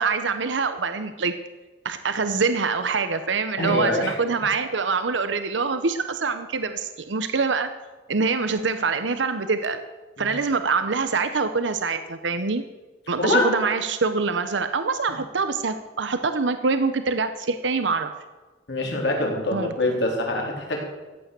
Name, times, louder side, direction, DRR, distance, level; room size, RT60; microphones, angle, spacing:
voice 1, 0.0-1.3 1.8-7.7 8.1-9.8 10.2-12.6 13.1-18.1 19.5-19.7, right 4 dB, 85° right, 10 dB, 0.8 m, -25 dB
voice 2, 3.6-4.1 10.2-10.3 13.2-13.5 18.7-20.8, left 2 dB, 70° left, 0 dB, 3.7 m, -24 dB
15.0 x 9.2 x 6.8 m, 1.2 s
head